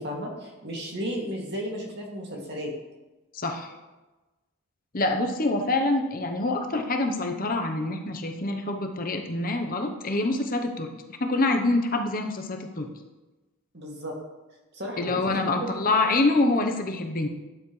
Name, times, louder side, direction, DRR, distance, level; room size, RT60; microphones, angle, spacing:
voice 1, 0.0-2.7 13.7-14.1 14.7-15.7 16.0-16.1, equal, 50° right, -1 dB, 2.4 m, -34 dB
voice 2, 3.3-3.7 4.9-10.9 11.2-12.9 15.0-17.3, left 2 dB, 40° left, 4 dB, 0.9 m, -26 dB
13.0 x 9.8 x 3.2 m, 1.1 s
head